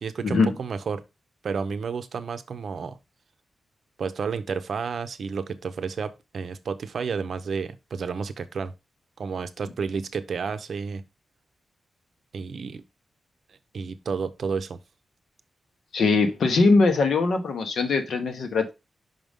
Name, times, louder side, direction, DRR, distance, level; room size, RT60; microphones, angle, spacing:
voice 1, 0.0-1.0 1.4-3.0 4.0-8.7 9.2-11.0 12.3-12.8 13.5-14.8, right 5 dB, 60° right, 0.6 m, -31 dB
voice 2, 15.9-18.7, left 3 dB, 70° left, 1.2 m, -21 dB
5.8 x 5.2 x 3.5 m
wide cardioid pair, 145°, 0 cm